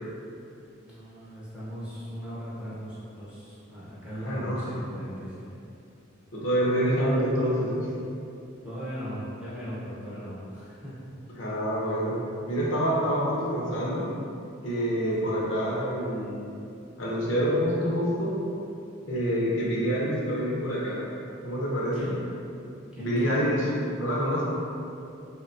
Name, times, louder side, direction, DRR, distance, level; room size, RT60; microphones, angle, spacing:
voice 1, 0.8-5.6 8.6-10.9 15.2-15.4 21.9-22.2 22.9-23.3, equal, 5° right, -10 dB, 0.5 m, -38 dB
voice 2, 4.2-4.7 6.3-7.9 11.4-12.2 12.5-14.0 14.6-16.5 17.0-18.3 19.1-21.0 21.4-22.1 23.0-23.7 24.0-24.4, equal, 70° left, -5 dB, 0.5 m, -27 dB
2.8 x 2.1 x 2.5 m, 2.7 s
head